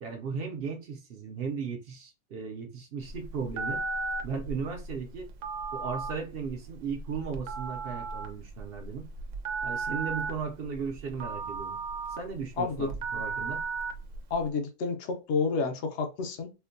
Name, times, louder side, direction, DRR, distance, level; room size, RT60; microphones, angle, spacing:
voice 1, 0.0-3.8 4.2-5.3 5.7-9.1 9.6-11.8 12.1-13.6, right 6 dB, 60° right, 0.8 m, -36 dB
Telephone, 3.0-14.4, right 4 dB, 90° right, 1.0 m, -36 dB
voice 2, 12.6-12.9 14.3-16.5, left 4 dB, 70° left, 1.0 m, -30 dB
4.2 x 2.1 x 2.6 m
omnidirectional pair, 1.2 m